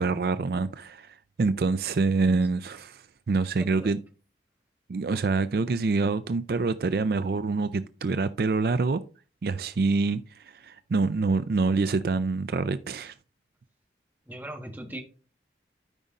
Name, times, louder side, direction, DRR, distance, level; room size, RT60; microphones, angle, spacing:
voice 1, 0.0-4.0 4.9-9.0 9.4-13.1, right 4 dB, 60° right, 0.4 m, -26 dB
voice 2, 3.6-3.9 14.3-15.0, right 1 dB, 10° right, 1.3 m, -39 dB
12.5 x 5.3 x 2.5 m
head